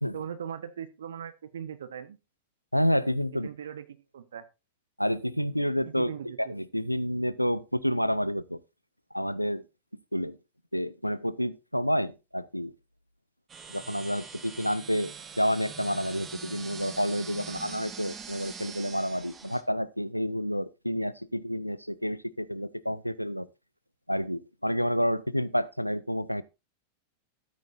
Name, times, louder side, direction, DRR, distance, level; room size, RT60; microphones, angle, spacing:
voice 1, 0.1-2.2 3.4-3.8 4.1-4.4 5.8-6.5, right 8 dB, 65° right, 1.2 m, -39 dB
voice 2, 2.7-3.5 5.0-6.1 6.4-8.6 9.1-9.6 10.1-10.4 10.7-12.7 13.7-23.5 24.1-26.4, equal, 90° left, 0.5 m, -29 dB
sound 1, 13.5-19.6, right 5 dB, 25° right, 1.4 m, -43 dB
13.0 x 8.7 x 2.6 m
figure-of-eight pair, 90°, 0 cm